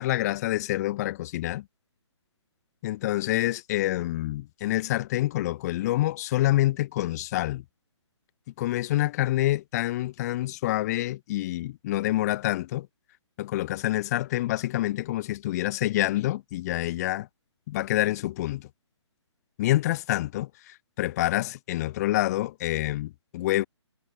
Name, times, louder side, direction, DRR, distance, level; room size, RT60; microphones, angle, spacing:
voice 1, 0.0-1.6 2.8-7.6 8.6-12.9 13.4-17.3 17.7-18.7 19.6-20.5 21.0-23.7, left 15 dB, 35° left, 5.1 m, -27 dB
figure-of-eight pair, 140°, 15 cm